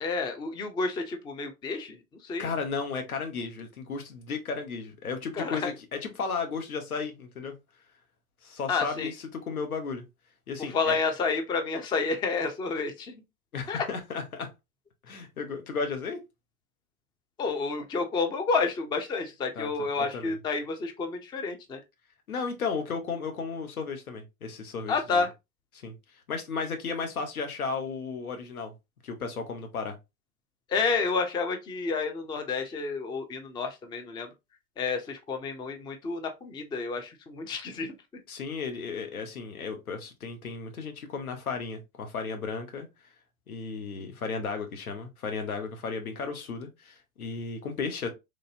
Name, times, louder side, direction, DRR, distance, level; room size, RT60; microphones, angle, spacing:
voice 1, 0.0-2.5 5.3-5.7 8.7-9.1 10.6-13.1 13.7-13.8 17.4-21.8 24.9-25.3 30.7-34.3 34.8-37.9, left 4 dB, 10° left, 0.4 m, -30 dB
voice 2, 2.4-7.5 8.4-10.1 10.5-11.0 13.5-14.5 15.0-16.2 19.6-20.4 22.3-25.2 25.7-28.7 29.0-30.0 38.3-42.9 43.5-48.1, left 5 dB, 90° left, 1.0 m, -34 dB
3.2 x 2.6 x 2.7 m
hypercardioid pair, 95°, 42 cm